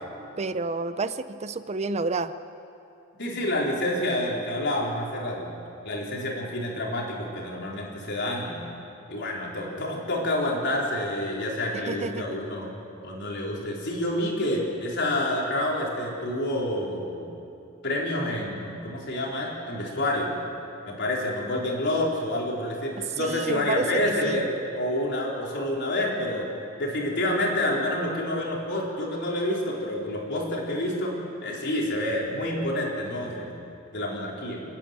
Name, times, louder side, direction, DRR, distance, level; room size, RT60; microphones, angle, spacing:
voice 1, 0.4-2.3 11.7-12.4 23.2-24.4, right 3 dB, 30° right, 12 dB, 0.5 m, -30 dB
voice 2, 3.2-5.5 5.8-8.6 9.1-12.7 13.0-17.3 17.8-20.4 20.9-24.5 24.7-26.5 26.8-31.1 31.4-33.5 33.9-34.6, left 1 dB, 60° left, -2 dB, 4.1 m, -28 dB
28.5 x 10.5 x 9.2 m, 2.7 s
head